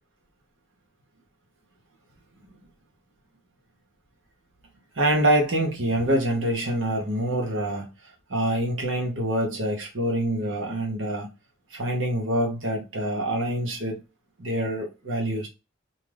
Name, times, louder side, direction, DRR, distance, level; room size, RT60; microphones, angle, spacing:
voice 1, 5.0-7.9 8.3-11.3 11.7-14.0 14.4-15.5, right 1 dB, 75° right, 0.9 m, -25 dB
2.7 x 2.3 x 3.2 m
head